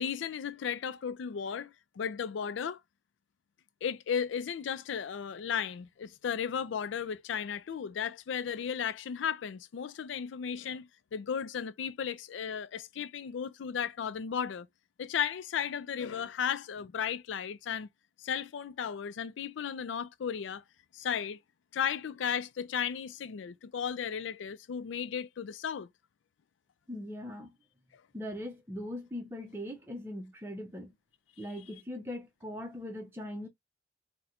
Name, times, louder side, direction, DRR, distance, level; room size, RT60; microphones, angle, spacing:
voice 1, 0.0-2.8 3.8-14.7 15.0-17.9 18.2-20.6 20.9-21.4 21.7-25.9, left 7 dB, 90° left, 0.4 m, -35 dB
voice 2, 26.9-27.5 28.1-30.9 31.4-33.5, left 1 dB, 10° right, 0.5 m, -40 dB
4.2 x 2.1 x 2.4 m
head